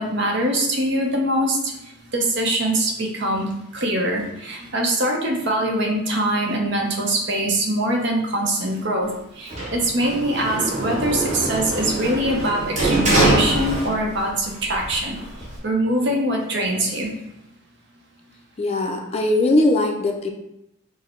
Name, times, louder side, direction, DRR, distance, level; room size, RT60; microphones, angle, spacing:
voice 1, 0.0-17.1, right 1 dB, 60° right, 1 dB, 0.8 m, -23 dB
Sliding door, 9.5-14.3 14.6-15.6, right 1 dB, 35° right, 1.1 m, -23 dB
voice 2, 18.6-20.3, left 2 dB, 30° left, 3 dB, 0.4 m, -20 dB
4.7 x 2.1 x 4.3 m, 0.84 s
head